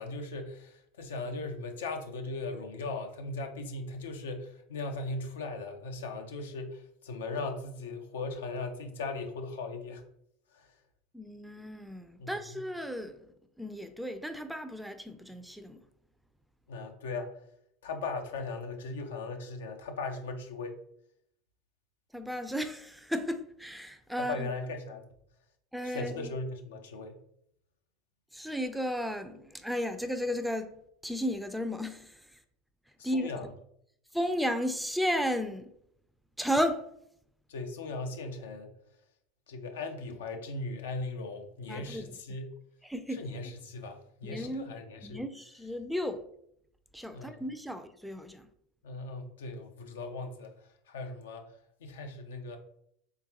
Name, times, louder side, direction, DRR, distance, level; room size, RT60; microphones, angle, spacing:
voice 1, 0.0-10.0 10.5-10.7 12.2-12.6 16.7-17.4 17.8-20.8 24.2-25.1 25.8-27.2 33.0-33.5 37.5-38.7 39.5-42.6 43.1-45.2 47.1-47.4 48.8-52.6, left 3 dB, 90° left, 0.6 m, -38 dB
voice 2, 11.1-15.9 22.1-24.5 25.7-26.3 28.3-32.4 33.0-33.5 34.1-35.7 36.4-36.9 41.7-42.0 42.8-43.4 44.2-44.7 45.0-46.2 46.9-48.5, equal, ahead, 0.4 m, -34 dB
3.7 x 3.5 x 2.9 m
hypercardioid pair, 100°, 0 cm